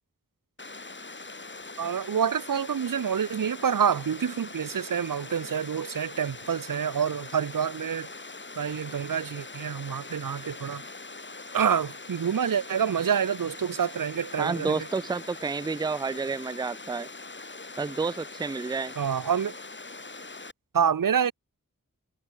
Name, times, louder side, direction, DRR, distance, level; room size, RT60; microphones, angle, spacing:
Water, 0.6-20.5, left 3 dB, 35° left, 1.3 m, -42 dB
voice 1, 1.8-8.1 8.6-10.8 11.5-14.8 19.0-19.6 20.7-21.3, right 7 dB, 75° right, 0.6 m, -27 dB
voice 2, 14.4-17.1 17.8-18.9, right 4 dB, 15° right, 0.4 m, -30 dB
wide cardioid pair, 45°, 34 cm